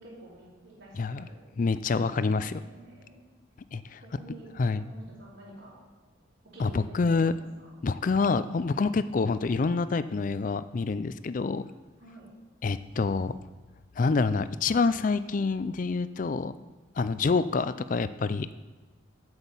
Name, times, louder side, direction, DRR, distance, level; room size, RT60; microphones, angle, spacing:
voice 1, 0.0-1.4 1.9-3.2 4.0-5.8 6.4-7.7 12.0-12.3, right 1 dB, 75° right, -11 dB, 3.6 m, -49 dB
voice 2, 1.6-2.6 3.7-4.0 4.6-4.8 6.6-7.3 7.8-11.6 12.6-13.4 14.0-16.6 17.0-18.5, left 4 dB, 40° left, 14 dB, 0.4 m, -27 dB
8.2 x 8.0 x 5.5 m, 1.4 s
head